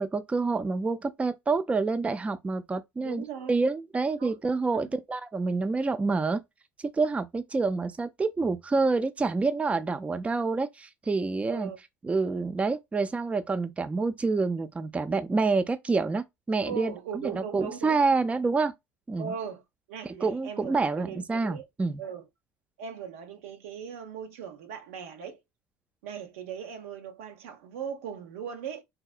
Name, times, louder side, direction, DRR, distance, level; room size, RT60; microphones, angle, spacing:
voice 1, 0.0-6.4 6.8-11.7 12.0-18.7 19.1-19.3 20.0-22.0, right 4 dB, 20° right, 0.4 m, -27 dB
voice 2, 3.0-3.6 4.2-4.4 4.7-4.8 11.5-11.8 16.7-18.0 19.2-19.6 19.9-21.7 22.0-22.3 22.8-25.4 26.0-28.8, right 7 dB, 80° right, 0.7 m, -39 dB
3.8 x 2.0 x 2.3 m
hypercardioid pair, 70°, 7 cm